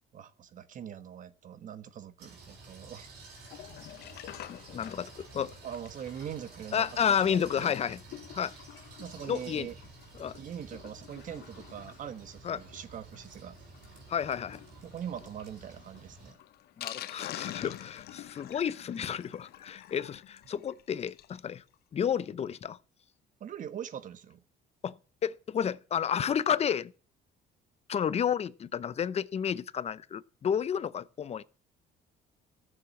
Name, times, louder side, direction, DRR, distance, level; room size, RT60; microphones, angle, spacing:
voice 1, 0.1-3.1 5.6-7.7 9.0-9.8 10.4-13.6 14.8-16.4 17.6-17.7 23.4-24.4, right 9 dB, 50° right, 1.3 m, -42 dB
sound 1, 2.2-16.3, right 3 dB, 75° right, 4.4 m, -51 dB
Sink (filling or washing), 3.3-21.4 21.7-21.8 22.0-22.1 22.5-22.6, left 13 dB, 70° left, 0.8 m, -48 dB
voice 2, 4.5-5.6 6.7-8.0 8.3-8.5 9.3-9.7 10.2-10.4 12.4-12.6 14.1-14.6 16.8-21.6 21.9-22.8 24.8-24.9 25.2-26.9 27.9-31.4, left 8 dB, 40° left, 0.7 m, -31 dB
14.0 x 7.2 x 7.2 m
cardioid pair, 110°, 17 cm